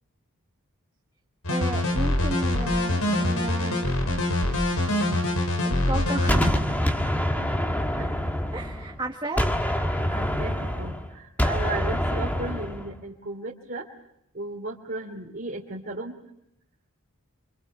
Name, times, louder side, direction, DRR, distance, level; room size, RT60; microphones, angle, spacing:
sound 1, 1.4-6.5, left 1 dB, 85° left, 5.0 m, -24 dB
voice 1, 1.5-3.9 5.6-6.5 6.9-7.1 8.5-9.5, right 2 dB, 20° right, 1 dB, 1.5 m, -33 dB
Gunshot gunfire, 6.3-9.0 9.4-12.9, equal, 10° left, 1.7 m, -26 dB
voice 2, 10.1-13.9 14.3-16.2, right 2 dB, 45° right, -3 dB, 2.9 m, -35 dB
29.0 x 25.5 x 5.5 m, 0.80 s
head